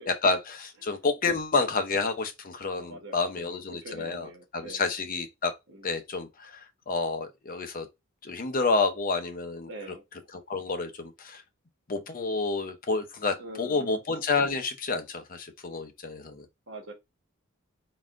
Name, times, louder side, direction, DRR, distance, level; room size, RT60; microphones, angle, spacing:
voice 1, 0.0-5.5 5.8-7.9 8.2-9.7 10.3-11.4 11.9-16.4, left 3 dB, 45° left, 0.8 m, -29 dB
voice 2, 2.7-4.8 5.7-5.9 9.7-10.0 13.4-14.0 16.7-16.9, right 1 dB, 65° right, 1.2 m, -44 dB
4.0 x 2.5 x 3.5 m
head